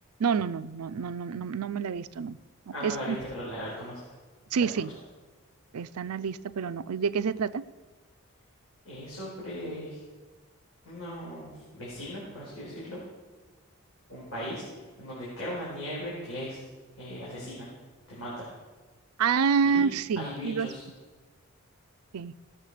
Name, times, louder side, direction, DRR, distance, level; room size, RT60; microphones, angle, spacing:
voice 1, 0.2-2.4 2.7-3.2 4.5-4.9 5.7-7.6 19.2-20.7 22.1-22.3, right 6 dB, 75° right, 15 dB, 0.4 m, -28 dB
voice 2, 2.7-4.1 8.8-10.0 10.8-13.0 14.1-14.6 15.0-16.6 17.0-17.7 18.1-18.5 19.6-19.9 20.2-20.8, equal, 65° left, -7 dB, 4.6 m, -38 dB
17.5 x 7.2 x 4.9 m, 1.3 s
head